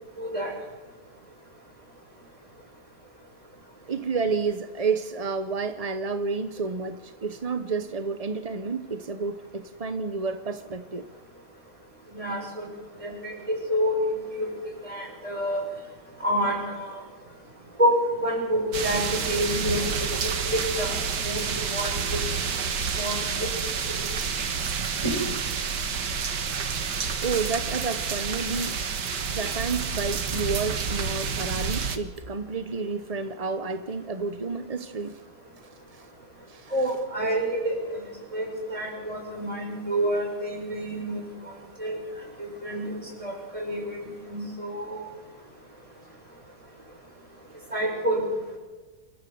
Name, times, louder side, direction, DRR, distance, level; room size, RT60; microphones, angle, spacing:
voice 1, 0.2-0.5 12.1-12.7 13.0-14.0 14.3-14.5 14.8-15.6 16.2-17.0 17.8-21.4 21.7-22.2 22.9-23.5 23.9-24.0 25.0-25.1 36.7-37.8 38.3-41.2 41.8-42.0 42.4-45.0 47.7-48.2, equal, 20° right, -1 dB, 6.9 m, -28 dB
voice 2, 3.9-11.1 19.8-19.9 27.2-28.8 29.1-35.2 35.9-36.1 36.5-36.9, right 4 dB, 35° right, 9 dB, 0.6 m, -30 dB
sound 1, 18.7-32.0, right 6 dB, 90° right, 2.1 m, -29 dB
27.0 x 14.0 x 7.8 m, 1.3 s
omnidirectional pair, 1.8 m